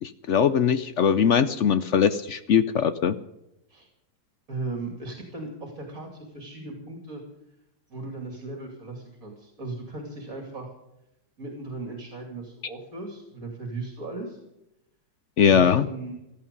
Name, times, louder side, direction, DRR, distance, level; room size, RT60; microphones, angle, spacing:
voice 1, 0.0-3.2 15.4-15.9, left 7 dB, 60° left, 13 dB, 0.8 m, -21 dB
voice 2, 4.5-7.2 7.9-10.7 11.4-14.4 15.5-16.2, right 2 dB, 55° right, 1 dB, 3.1 m, -37 dB
16.5 x 13.5 x 5.4 m, 0.89 s
omnidirectional pair, 1.7 m